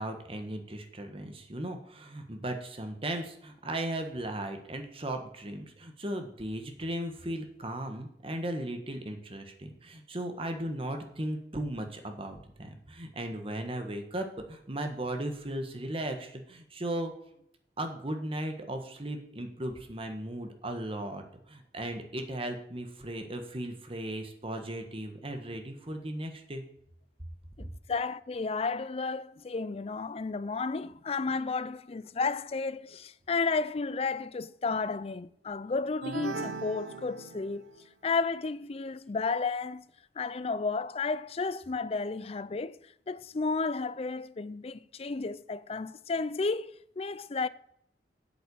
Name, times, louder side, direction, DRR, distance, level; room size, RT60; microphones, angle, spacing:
voice 1, 0.0-17.1 17.8-21.2 21.5-26.6 27.6-27.7, right 1 dB, 30° right, 1.4 m, -36 dB
voice 2, 27.6-37.7 38.0-39.8 40.2-42.8 43.1-47.5, left 4 dB, 35° left, 0.4 m, -32 dB
sound 1, 36.0-37.9, right 4 dB, 75° right, 0.9 m, -39 dB
8.7 x 7.8 x 7.0 m
head